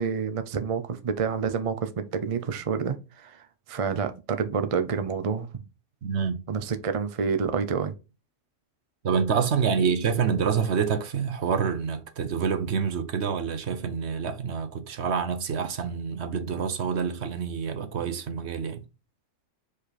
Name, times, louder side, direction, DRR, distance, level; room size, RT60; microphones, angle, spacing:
voice 1, 0.0-5.6 6.5-7.9, right 6 dB, 40° right, 0.6 m, -28 dB
voice 2, 6.0-6.4 9.0-18.8, right 6 dB, 65° right, 1.1 m, -27 dB
5.0 x 4.9 x 4.1 m
omnidirectional pair, 1.3 m